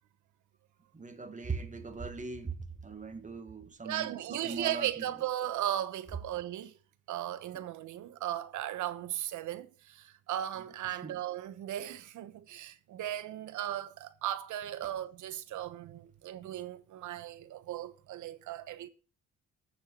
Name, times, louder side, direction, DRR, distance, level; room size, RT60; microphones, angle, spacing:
voice 1, 0.9-5.0 7.5-7.7 11.0-11.2 14.8-14.9, right 4 dB, 25° right, 1.9 m, -40 dB
voice 2, 3.8-6.8 7.1-18.9, right 12 dB, 80° right, 1.1 m, -37 dB
7.9 x 7.1 x 8.4 m
cardioid pair, 90°, 30 cm